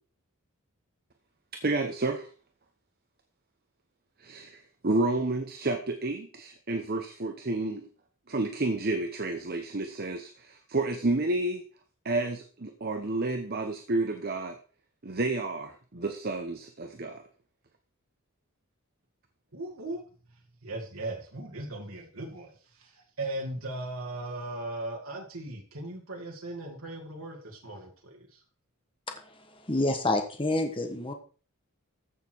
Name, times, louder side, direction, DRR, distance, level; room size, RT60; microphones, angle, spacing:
voice 1, 1.6-2.3 4.2-7.9 8.3-11.6 12.0-14.6 15.0-17.2, right 2 dB, 45° right, 5 dB, 1.0 m, -30 dB
voice 2, 19.5-20.0 20.6-28.4, right 2 dB, 75° right, 0 dB, 2.5 m, -38 dB
voice 3, 29.1-31.1, left 2 dB, 25° left, 5 dB, 1.3 m, -29 dB
14.5 x 6.6 x 4.7 m, 0.39 s
head